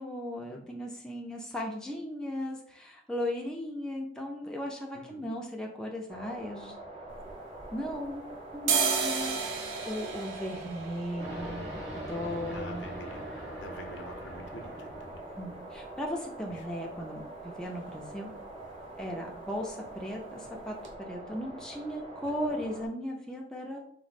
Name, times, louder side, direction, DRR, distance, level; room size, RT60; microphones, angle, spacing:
voice 1, 0.0-6.7 7.7-8.3 8.5-9.4 9.8-12.9 15.4-18.3 19.0-20.8 21.1-23.8, equal, 5° left, -1 dB, 0.4 m, -37 dB
voice 2, 4.9-5.3 12.1-15.2 16.5-16.7, left 1 dB, 70° left, 4 dB, 0.5 m, -47 dB
sound 1, 6.1-22.9, right 2 dB, 30° right, 0.8 m, -45 dB
sound 2, 7.1-8.1 8.5-16.2 16.5-16.6 16.9-17.4 17.7-18.0 18.2-18.5 18.7-19.5 19.8-20.0 20.5-20.6 20.8-20.9, right 5 dB, 85° right, 0.5 m, -35 dB
sound 3, 11.2-15.9, equal, 65° right, 1.3 m, -42 dB
3.0 x 2.0 x 4.1 m, 0.68 s
head